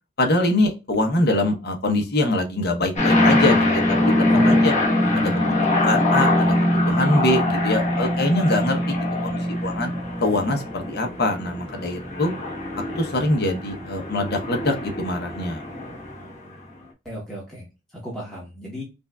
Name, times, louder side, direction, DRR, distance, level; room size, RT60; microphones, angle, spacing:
voice 1, 0.2-3.8 4.5-4.7 5.1-5.5 5.8-8.9 9.2-9.9 10.2-12.3 12.9-15.6, left 1 dB, 55° left, 4 dB, 0.8 m, -23 dB
sound 1, 3.0-16.6, left 1 dB, 35° left, 1.2 m, -22 dB
voice 2, 4.3-5.6 17.0-18.8, right 1 dB, 5° left, -6 dB, 1.0 m, -36 dB
5.1 x 2.3 x 2.3 m, 0.28 s
head